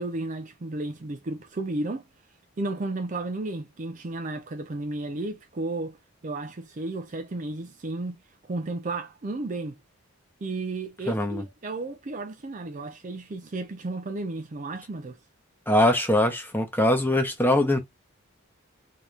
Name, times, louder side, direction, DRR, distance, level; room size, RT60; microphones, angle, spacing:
voice 1, 0.0-2.1 2.6-6.0 6.2-8.2 8.5-9.8 10.4-15.2, right 2 dB, 35° right, 0.4 m, -33 dB
voice 2, 11.1-11.4 15.7-17.8, left 1 dB, 10° left, 1.0 m, -22 dB
3.7 x 2.8 x 3.3 m
head